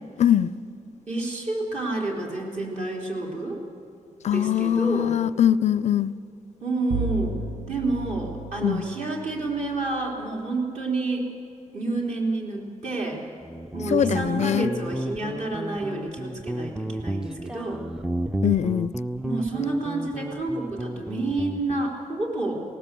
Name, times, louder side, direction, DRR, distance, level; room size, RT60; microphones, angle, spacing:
voice 1, 0.2-0.5 4.2-6.1 8.6-8.8 13.9-14.7 18.4-18.9, left 10 dB, 60° left, 18 dB, 0.4 m, -22 dB
voice 2, 1.1-3.6 4.3-5.2 6.6-7.3 7.7-11.3 11.7-13.2 13.7-17.8 19.2-22.6, right 2 dB, 60° right, -1 dB, 3.7 m, -29 dB
Bowed string instrument, 6.9-10.0, right 3 dB, 90° right, 1.1 m, -33 dB
Guitar, 13.4-21.9, right 1 dB, 5° right, 0.4 m, -32 dB
19.0 x 18.5 x 7.6 m, 2.6 s
wide cardioid pair, 120°, 13 cm